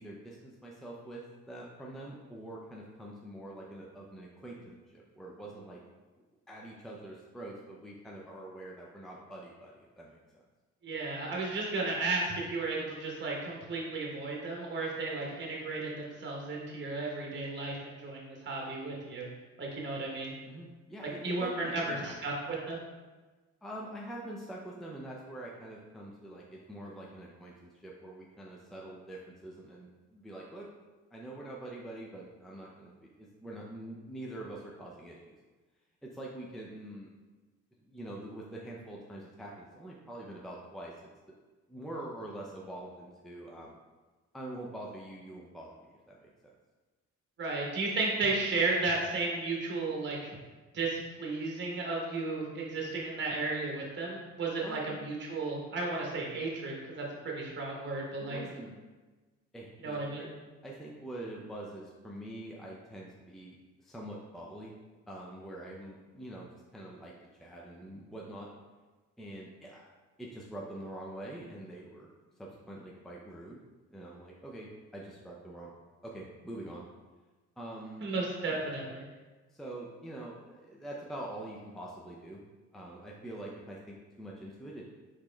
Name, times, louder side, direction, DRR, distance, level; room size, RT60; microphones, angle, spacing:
voice 1, 0.0-5.8 6.5-10.2 20.5-22.1 23.6-30.7 31.1-35.4 36.0-37.1 37.8-40.9 41.7-43.7 44.3-46.5 54.6-55.0 58.2-58.8 59.5-60.3 60.6-64.7 65.1-66.5 66.7-67.1 67.4-68.5 69.2-69.9 70.2-72.1 72.4-73.6 73.9-75.7 76.0-76.9 77.6-78.1 78.5-78.6 79.5-82.4 82.7-84.9, right 1 dB, ahead, -3 dB, 0.5 m, -45 dB
voice 2, 10.8-19.3 19.6-20.3 21.2-22.8 47.4-50.4 50.7-58.4 59.8-60.2 78.0-79.0, right 3 dB, 35° right, -2 dB, 1.0 m, -34 dB
4.1 x 3.1 x 3.3 m, 1.3 s
cardioid pair, 90°, 30 cm